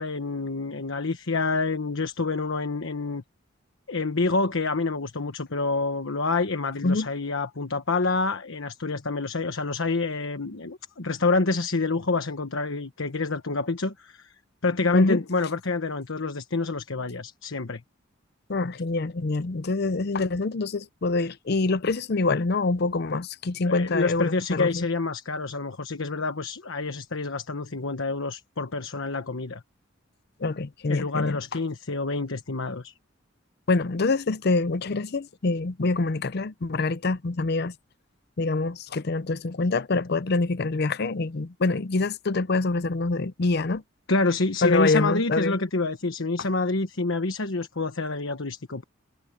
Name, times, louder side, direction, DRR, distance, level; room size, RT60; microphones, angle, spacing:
voice 1, 0.0-3.2 3.9-14.3 14.6-17.8 23.6-29.6 30.9-32.9 44.1-48.8, left 3 dB, 80° left, 1.2 m, -27 dB
voice 2, 18.5-24.9 30.4-31.4 33.7-37.7 38.4-43.8 44.6-45.6, left 3 dB, 55° left, 0.6 m, -25 dB
head